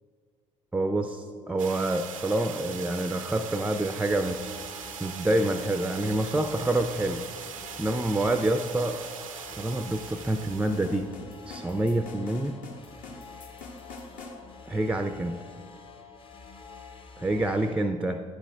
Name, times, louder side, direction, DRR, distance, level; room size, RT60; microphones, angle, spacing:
voice 1, 0.7-4.5 5.0-7.2 7.5-9.0 9.6-11.1 11.5-12.6 14.7-15.4 17.2-18.2, right 1 dB, 5° right, 8 dB, 0.4 m, -27 dB
sound 1, 1.6-11.1, right 7 dB, 85° right, 0.5 m, -41 dB
sound 2, 4.1-17.8, left 5 dB, 30° left, 0.7 m, -48 dB
sound 3, 10.7-14.4, left 3 dB, 55° left, 1.1 m, -45 dB
9.5 x 6.9 x 3.3 m, 2.1 s
figure-of-eight pair, 50°, 17 cm